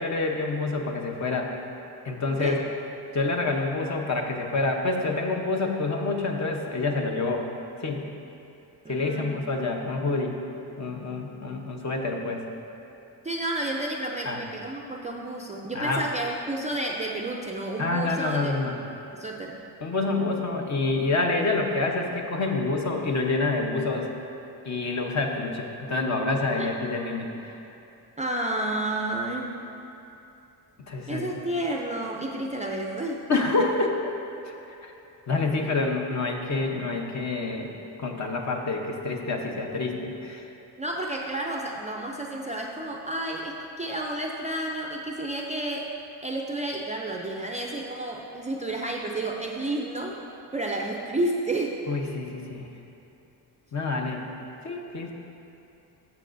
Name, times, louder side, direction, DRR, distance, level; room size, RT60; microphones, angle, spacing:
voice 1, 0.0-1.5 2.0-2.6 3.1-7.5 7.8-8.1 8.9-10.4 10.8-12.4 14.2-14.4 15.7-16.1 17.8-18.8 19.8-24.1 24.6-27.6 30.9-31.2 33.3-34.1 34.4-34.5 34.8-34.9 35.3-37.7 38.0-40.5 51.9-52.7 53.7-54.2 54.6-55.1, left 3 dB, 40° left, 1 dB, 0.9 m, -27 dB
voice 2, 8.8-9.4 13.2-18.6 19.1-19.6 26.6-26.7 28.2-29.6 31.1-33.2 40.8-45.9 46.2-50.2 50.5-51.8, right 1 dB, 15° right, 0 dB, 0.4 m, -31 dB
13.5 x 6.8 x 2.6 m, 2.8 s
cardioid pair, 120°, 43 cm